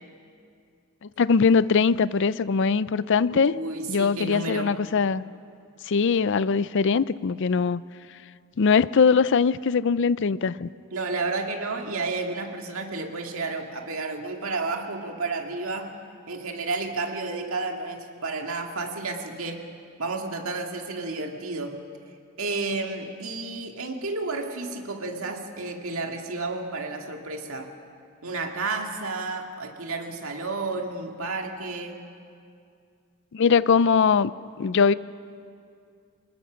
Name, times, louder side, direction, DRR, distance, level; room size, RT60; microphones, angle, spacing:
voice 1, 1.0-3.5 3.9-5.2 5.9-7.8 8.6-10.7 33.3-34.9, left 5 dB, 55° left, 18 dB, 0.4 m, -21 dB
voice 2, 3.3-4.7 10.9-15.9 16.3-19.6 20.0-21.8 22.4-27.7 28.2-32.0, right 3 dB, 65° right, 3 dB, 2.0 m, -31 dB
25.0 x 20.0 x 6.2 m, 2.3 s
head